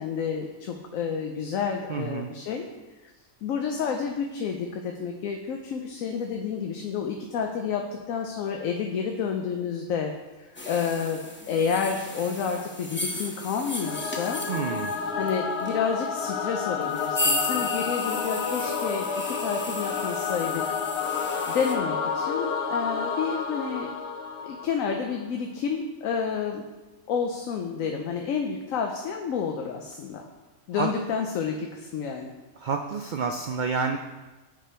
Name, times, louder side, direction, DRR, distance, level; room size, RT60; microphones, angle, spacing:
voice 1, 0.0-2.7 3.0-3.1 3.4-10.1 10.4-11.2 11.5-14.4 15.2-20.7 21.5-23.9 24.4-26.7 27.1-30.2 30.7-32.3, left 6 dB, 90° left, 3 dB, 1.1 m, -30 dB
voice 2, 1.9-2.3 14.5-14.9 30.7-30.9 32.6-34.0, right 5 dB, 85° right, 4 dB, 0.4 m, -29 dB
sound 1, 10.6-21.8, left 1 dB, 10° left, 0.6 m, -35 dB
Singing / Musical instrument, 13.8-25.1, left 6 dB, 60° left, 0.8 m, -30 dB
7.4 x 5.1 x 4.3 m, 1.1 s
omnidirectional pair, 1.4 m